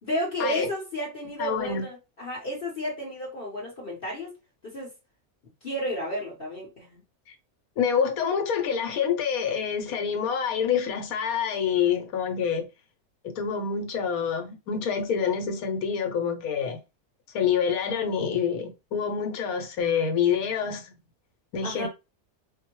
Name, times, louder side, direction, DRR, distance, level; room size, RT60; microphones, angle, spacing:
voice 1, 0.0-4.3 4.6-4.9 5.6-7.0 21.6-21.9, equal, 45° left, 1.0 m, -32 dB
voice 2, 1.4-1.8 7.8-12.7 13.2-16.8 17.3-20.9 21.5-21.9, left 7 dB, 75° left, 1.2 m, -27 dB
4.3 x 2.1 x 2.9 m
omnidirectional pair, 1.6 m